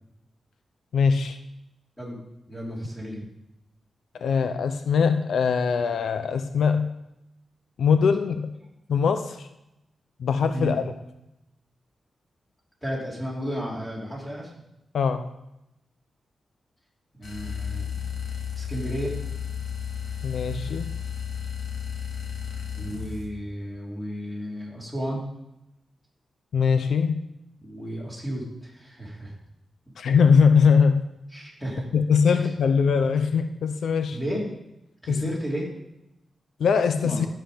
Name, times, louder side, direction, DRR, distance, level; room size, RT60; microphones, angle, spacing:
voice 1, 0.9-1.4 4.2-6.9 7.8-8.5 8.9-9.5 10.2-10.8 14.9-15.3 20.2-20.9 26.5-27.2 30.0-31.1 31.9-34.2 35.1-35.2 36.6-37.3, left 6 dB, 80° left, 9 dB, 0.6 m, -21 dB
voice 2, 2.5-3.3 10.5-10.8 12.8-14.5 17.2-17.9 18.5-19.1 22.7-25.3 27.6-29.3 31.3-31.9 32.3-32.5 34.1-34.5 35.0-35.7 37.0-37.2, equal, 5° left, -4 dB, 3.2 m, -33 dB
sound 1, 17.2-23.3, left 7 dB, 45° left, 2.0 m, -33 dB
13.0 x 7.8 x 5.1 m, 0.88 s
wide cardioid pair, 170°, 0 cm